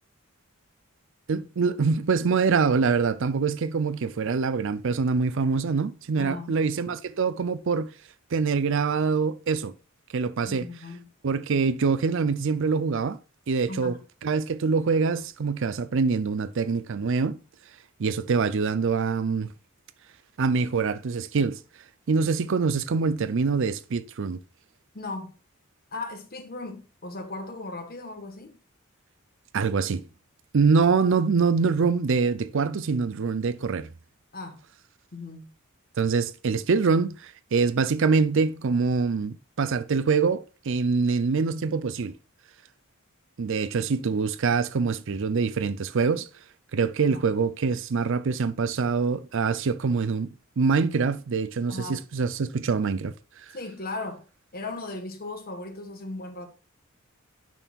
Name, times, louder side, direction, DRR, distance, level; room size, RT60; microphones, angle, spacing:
voice 1, 1.3-7.9 8.3-9.7 10.1-10.7 11.2-13.2 13.5-13.9 14.2-17.4 18.0-19.5 20.4-21.6 22.1-24.4 29.5-30.1 30.5-33.9 36.0-42.1 43.4-46.3 46.7-53.1, right 5 dB, 65° right, 0.5 m, -24 dB
voice 2, 6.2-6.6 10.4-11.1 13.7-14.0 24.9-25.3 25.9-28.6 34.3-34.6 35.1-35.5 47.1-47.2 51.7-52.0 53.5-54.2 54.5-56.5, left 2 dB, 45° left, 1.3 m, -37 dB
9.0 x 6.3 x 2.4 m
head